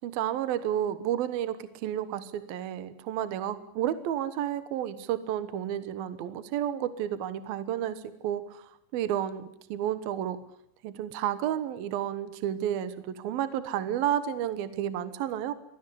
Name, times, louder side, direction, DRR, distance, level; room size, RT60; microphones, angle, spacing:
voice 1, 0.0-10.4 10.8-15.5, right 11 dB, 65° right, 13 dB, 2.7 m, -31 dB
24.5 x 17.5 x 10.0 m, 0.75 s
omnidirectional pair, 5.0 m